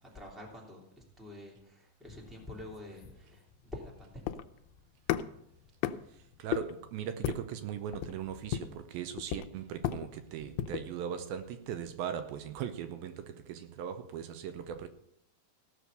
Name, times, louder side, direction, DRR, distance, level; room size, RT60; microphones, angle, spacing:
voice 1, 0.1-3.4 3.7-4.4, left 1 dB, ahead, 2.4 m, -47 dB
sound 1, 2.2-10.9, left 11 dB, 80° left, 2.3 m, -37 dB
voice 2, 6.1-14.9, right 9 dB, 80° right, 2.5 m, -39 dB
16.5 x 6.4 x 6.7 m
omnidirectional pair, 4.2 m